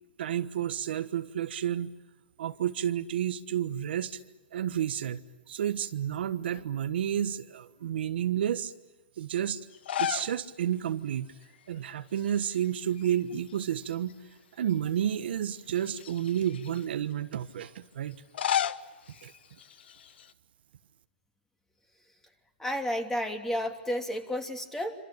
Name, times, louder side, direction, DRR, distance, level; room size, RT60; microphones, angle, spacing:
voice 1, 0.2-1.9 2.4-4.2 4.5-5.2 5.5-8.7 9.2-9.6 10.0-11.3 11.7-14.1 14.6-18.2 19.2-19.3, right 10 dB, 70° right, 10 dB, 1.3 m, -31 dB
sound 1, 9.7-10.4 10.7-10.8 12.2-12.7 13.0-14.1 14.7-14.8 15.7-16.8 18.1-20.3, left 10 dB, 70° left, 1.2 m, -34 dB
voice 2, 22.6-25.0, equal, 5° left, 5 dB, 3.0 m, -31 dB
26.5 x 26.0 x 8.6 m, 1.2 s
hypercardioid pair, 135°, 6 cm